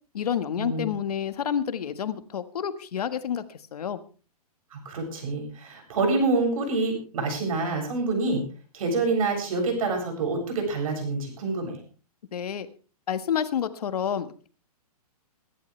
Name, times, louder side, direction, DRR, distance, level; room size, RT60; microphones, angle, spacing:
voice 1, 0.1-4.0 12.3-12.7 13.1-14.5, left 8 dB, 75° left, 11 dB, 1.6 m, -29 dB
voice 2, 4.7-8.4 8.7-11.8, right 3 dB, 60° right, 3 dB, 7.6 m, -27 dB
23.0 x 11.5 x 3.3 m, 0.36 s
hypercardioid pair, 160°, 20 cm